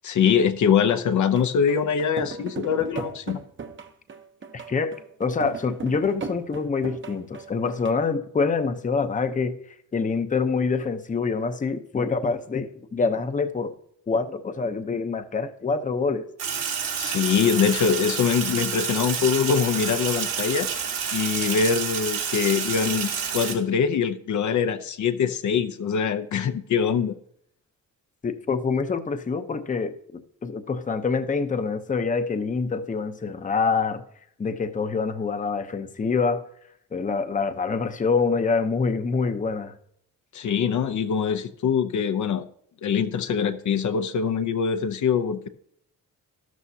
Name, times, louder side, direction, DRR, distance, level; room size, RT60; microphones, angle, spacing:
voice 1, 0.0-3.4 16.9-20.7 21.1-27.1 40.3-42.4 42.8-45.5, left 7 dB, 65° left, 9 dB, 0.8 m, -23 dB
sound 1, 1.2-7.9, right 5 dB, 35° right, 1.0 m, -37 dB
voice 2, 4.5-4.9 5.2-9.6 9.9-13.7 14.1-16.2 28.2-34.0 34.4-36.4 36.9-39.7, left 4 dB, 25° left, 8 dB, 0.8 m, -26 dB
Sink (filling or washing), 16.4-23.5, right 7 dB, 90° right, 3.3 m, -29 dB
12.5 x 12.5 x 2.8 m, 0.68 s
cardioid pair, 120°, 32 cm